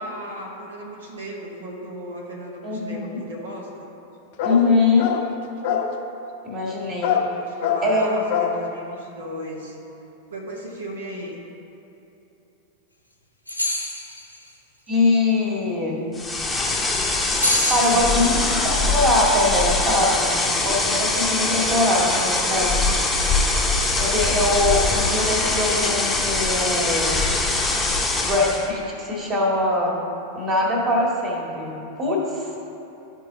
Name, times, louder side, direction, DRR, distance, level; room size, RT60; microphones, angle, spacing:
voice 1, 0.0-4.0 7.3-9.8 10.3-11.5 17.8-18.9, equal, 70° right, -1 dB, 1.1 m, -35 dB
voice 2, 2.6-3.2 4.4-5.1 6.4-7.1 7.8-8.1 14.9-16.0 17.6-18.4 18.6-22.8 24.0-27.2 28.2-29.9 30.3-32.6, left 2 dB, 30° right, -2 dB, 1.9 m, -22 dB
sound 1, 4.4-4.7 5.0-5.3 5.6-5.9 7.0-7.3 7.6-7.9 8.3-8.6, left 8 dB, 50° left, 0.6 m, -23 dB
sound 2, 13.5-14.4 17.3-18.5, left 1 dB, 90° left, 0.8 m, -25 dB
sound 3, 16.1-28.7, left 2 dB, 5° left, 0.9 m, -22 dB
12.5 x 4.6 x 3.9 m, 3.0 s
figure-of-eight pair, 90°, 0 cm